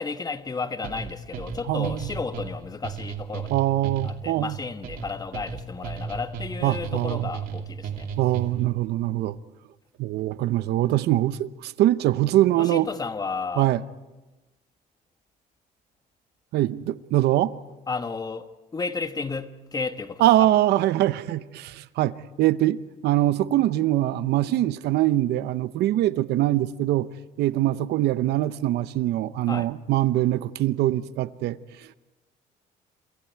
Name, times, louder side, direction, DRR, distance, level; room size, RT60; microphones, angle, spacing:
voice 1, 0.0-3.5 4.0-8.1 12.6-13.7 17.9-20.5 29.5-29.7, left 4 dB, 25° left, 1.3 m, -33 dB
sound 1, 0.8-8.8, right 6 dB, 55° right, 2.5 m, -35 dB
voice 2, 1.7-2.1 3.5-4.6 6.6-7.3 8.2-9.4 10.0-12.9 13.6-13.8 16.5-17.5 20.2-27.1 27.4-31.6, right 14 dB, 75° right, 0.8 m, -23 dB
28.0 x 26.5 x 4.7 m
cardioid pair, 110°, 17 cm